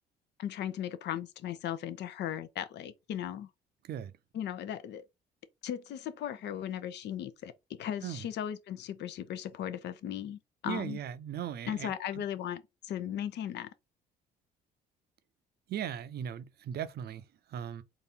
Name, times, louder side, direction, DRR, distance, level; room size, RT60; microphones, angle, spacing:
voice 1, 0.4-3.5 4.3-5.0 5.6-11.0 11.7-13.7, left 10 dB, 60° left, 0.7 m, -37 dB
voice 2, 10.7-12.2 15.7-17.8, right 9 dB, 55° right, 0.6 m, -38 dB
4.0 x 2.5 x 4.1 m
hypercardioid pair, 60°, 20 cm